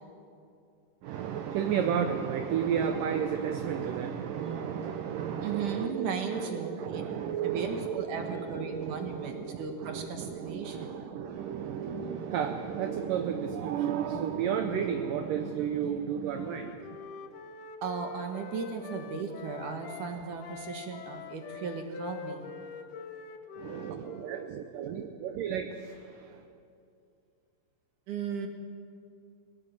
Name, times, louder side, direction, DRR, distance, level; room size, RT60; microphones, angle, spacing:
voice 1, 1.0-17.0 23.6-26.4, right 8 dB, 80° right, 6 dB, 2.0 m, -33 dB
voice 2, 5.4-7.0 7.4-11.0 17.8-22.5 28.1-28.5, right 5 dB, 60° right, 4 dB, 2.5 m, -36 dB
Wind instrument woodwind instrument, 16.3-20.1 20.4-24.5, left 7 dB, 75° left, 1.9 m, -45 dB
21.5 x 18.5 x 7.8 m, 2.5 s
omnidirectional pair, 5.0 m